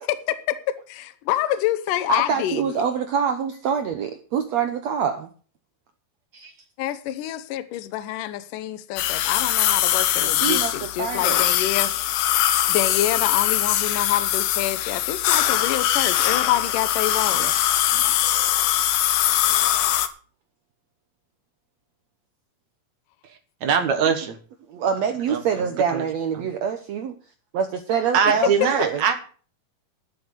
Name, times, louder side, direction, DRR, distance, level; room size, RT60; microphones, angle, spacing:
voice 1, 0.0-2.9 6.8-12.2 12.7-17.8 28.6-28.7, left 13 dB, 70° left, 2.3 m, -27 dB
voice 2, 2.1-5.3 6.3-6.5 10.2-11.4 17.3-17.5 18.0-18.3 24.7-27.1 27.5-29.0, right 7 dB, 75° right, 1.6 m, -25 dB
sound 1, 9.0-20.1, left 12 dB, 90° left, 2.9 m, -22 dB
voice 3, 23.6-24.4 25.3-25.4 25.9-26.0 26.4-26.5 28.1-29.2, right 7 dB, 60° right, 2.3 m, -22 dB
12.0 x 7.8 x 6.8 m
omnidirectional pair, 4.4 m